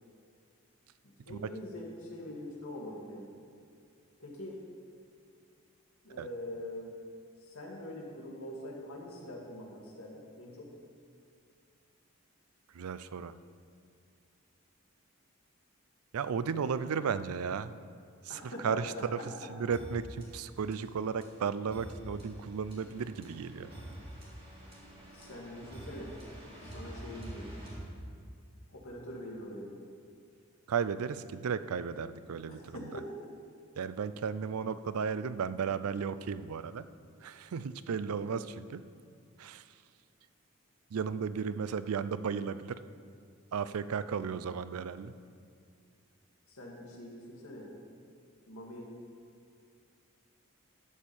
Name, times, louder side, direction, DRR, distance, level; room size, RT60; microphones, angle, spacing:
voice 1, 1.3-3.3 4.2-4.6 6.0-6.9 7.4-10.7 18.3-19.3 25.1-26.1 26.4-27.5 28.7-29.8 32.5-33.1 46.5-47.7 48.5-48.9, left 1 dB, 80° left, -3 dB, 2.1 m, -44 dB
voice 2, 12.7-13.3 16.1-17.7 18.2-19.2 19.5-23.7 30.7-32.9 33.8-36.9 37.2-38.8 39.4-39.6 40.9-42.8 43.5-45.1, right 6 dB, 90° right, 14 dB, 0.4 m, -34 dB
sound 1, 19.7-28.5, right 1 dB, 25° right, 2.1 m, -47 dB
12.0 x 4.4 x 7.1 m, 2.4 s
head